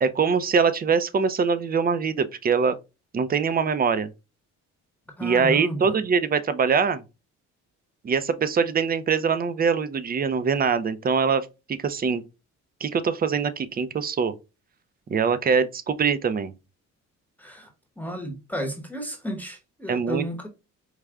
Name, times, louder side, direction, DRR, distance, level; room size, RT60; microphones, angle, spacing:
voice 1, 0.0-2.8 3.1-4.1 5.2-7.0 8.0-11.5 11.8-12.2 12.8-14.3 15.1-16.5 19.9-20.2, right 5 dB, 30° right, 0.5 m, -23 dB
voice 2, 5.2-6.0 17.4-17.7 18.0-20.5, equal, 5° left, 0.9 m, -33 dB
4.8 x 2.2 x 3.5 m
cardioid pair, 90°, 30 cm